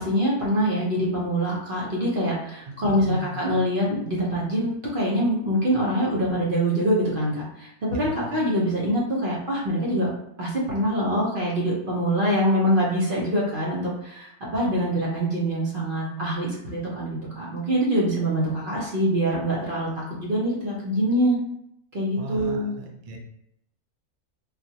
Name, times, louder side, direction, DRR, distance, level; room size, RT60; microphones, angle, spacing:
voice 1, 0.0-10.1 10.4-21.4 21.9-22.7, equal, 40° right, -5 dB, 0.9 m, -24 dB
voice 2, 2.8-3.4 7.9-8.2 22.2-23.2, right 2 dB, 75° right, 0 dB, 0.4 m, -36 dB
4.1 x 2.4 x 2.8 m, 0.76 s
omnidirectional pair, 1.6 m